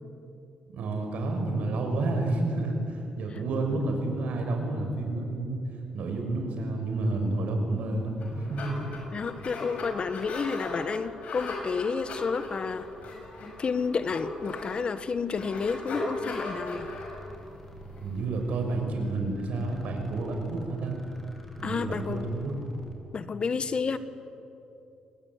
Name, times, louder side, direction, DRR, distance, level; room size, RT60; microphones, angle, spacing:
voice 1, 0.7-5.6 5.9-8.8 18.0-21.0 21.6-22.5, right 2 dB, 75° right, 3 dB, 6.0 m, -30 dB
sound 1, 8.0-18.7, left 2 dB, 65° left, 6.7 m, -38 dB
voice 2, 9.1-12.9 13.6-16.9 21.6-22.3 23.1-24.0, left 5 dB, 45° left, 12 dB, 1.4 m, -30 dB
sound 2, 16.7-23.0, equal, 10° left, 5.4 m, -47 dB
27.5 x 20.0 x 9.9 m, 2.7 s
cardioid pair, 85°, 2 cm